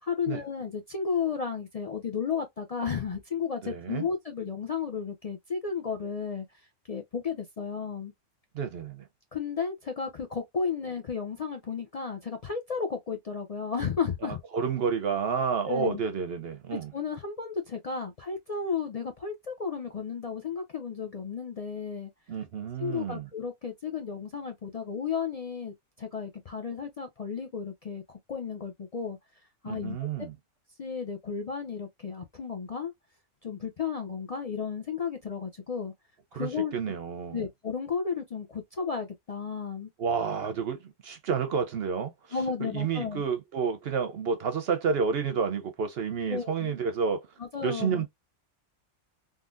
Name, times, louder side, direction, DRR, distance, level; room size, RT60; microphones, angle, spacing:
voice 1, 0.0-6.5 6.9-8.1 9.3-14.4 15.7-16.0 16.7-22.1 22.8-29.2 29.6-30.1 30.8-32.9 33.4-35.9 36.3-36.7 37.3-39.9 42.3-43.2 46.3-46.7 47.4-48.0, left 6 dB, 55° left, 0.4 m, -33 dB
voice 2, 3.6-4.1 8.5-9.0 14.2-16.9 22.3-23.3 29.7-30.3 36.3-37.4 40.0-42.1 42.6-47.3 47.6-48.1, right 6 dB, 60° right, 0.7 m, -30 dB
3.7 x 2.6 x 2.4 m
omnidirectional pair, 1.4 m